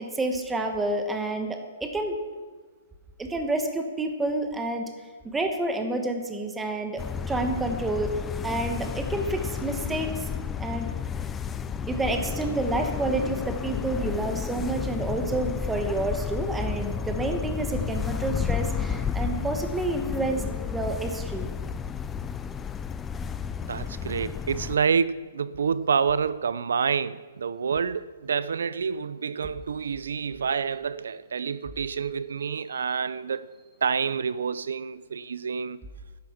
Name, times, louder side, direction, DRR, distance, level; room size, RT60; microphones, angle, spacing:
voice 1, 0.0-2.2 3.2-4.9 5.2-7.0 7.3-8.1 8.4-10.3 10.6-10.9 11.9-21.5, right 2 dB, 5° right, 1.2 m, -29 dB
sound 1, 7.0-24.8, left 7 dB, 10° left, 0.4 m, -32 dB
voice 2, 23.7-33.5 33.8-35.8, right 6 dB, 85° right, 0.5 m, -28 dB
13.0 x 11.0 x 5.9 m
hypercardioid pair, 165°, 0 cm